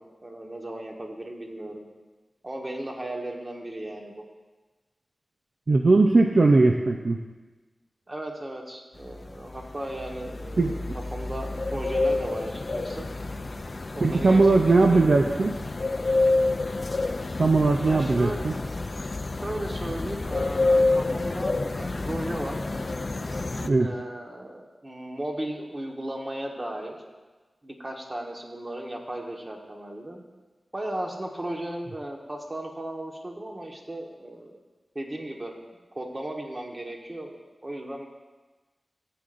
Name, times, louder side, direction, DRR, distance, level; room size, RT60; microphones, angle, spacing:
voice 1, 0.2-1.8 2.4-4.2 8.1-10.8 11.1-13.1 13.9-15.2 17.8-18.5 19.4-22.6 23.8-27.0 27.6-30.2 30.7-34.6 34.9-35.5 35.9-37.4 37.6-38.1, right 1 dB, 30° right, 0 dB, 1.4 m, -36 dB
voice 2, 5.7-7.2 10.6-11.0 14.0-15.5 17.4-18.5 23.6-23.9, right 3 dB, 60° right, 2 dB, 0.5 m, -19 dB
sound 1, 9.0-23.7, left 2 dB, 45° left, 0.4 m, -28 dB
14.0 x 7.8 x 2.6 m, 1.3 s
wide cardioid pair, 65°, 0 cm